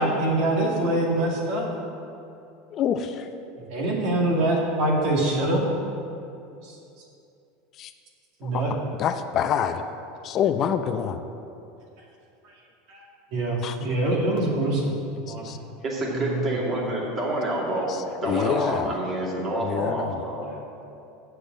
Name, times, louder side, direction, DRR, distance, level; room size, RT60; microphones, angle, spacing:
voice 1, 0.0-1.7 3.6-5.6 6.6-6.7 8.4-8.7 12.9-13.0 13.3-15.0 15.2-15.5 16.1-16.8, right 1 dB, 60° right, -1 dB, 2.2 m, -24 dB
voice 2, 2.7-3.3 7.8-7.9 8.4-8.6 9.0-9.8 10.2-11.2 13.6-13.8 15.4-15.6 18.2-18.9 19.6-20.2, left 8 dB, 45° left, 8 dB, 0.5 m, -26 dB
voice 3, 15.8-17.9 18.2-20.5, right 1 dB, 30° right, -3 dB, 2.5 m, -28 dB
7.8 x 6.7 x 7.5 m, 2.7 s
supercardioid pair, 110°, 0 cm